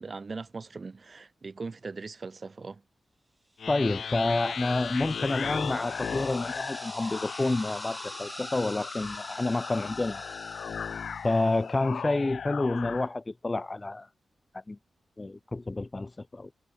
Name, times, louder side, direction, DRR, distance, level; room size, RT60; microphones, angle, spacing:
voice 1, 0.0-2.8, right 4 dB, 40° right, 5.5 m, -40 dB
sound 1, 3.6-13.1, left 6 dB, 70° left, 1.9 m, -37 dB
voice 2, 3.7-10.2 11.2-14.1 14.5-14.8 15.2-16.5, left 2 dB, 25° left, 0.5 m, -29 dB
sound 2, 3.8-11.6, right 1 dB, 15° right, 3.3 m, -45 dB
wide cardioid pair, 95°, 0 cm